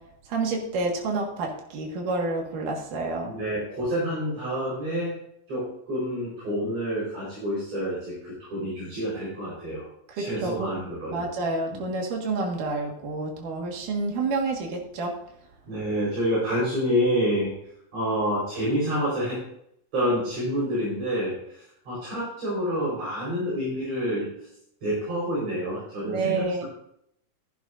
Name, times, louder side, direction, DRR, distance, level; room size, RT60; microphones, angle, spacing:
voice 1, 0.3-3.3 10.2-10.7 11.1-15.1 26.1-26.6, right 3 dB, 75° right, 1 dB, 3.3 m, -29 dB
voice 2, 3.2-5.2 5.5-9.9 10.2-11.3 11.7-11.8 15.7-17.5 17.9-19.4 19.9-24.5 24.8-26.6, equal, 50° right, -6 dB, 5.3 m, -28 dB
15.5 x 11.0 x 2.6 m, 0.73 s
omnidirectional pair, 3.8 m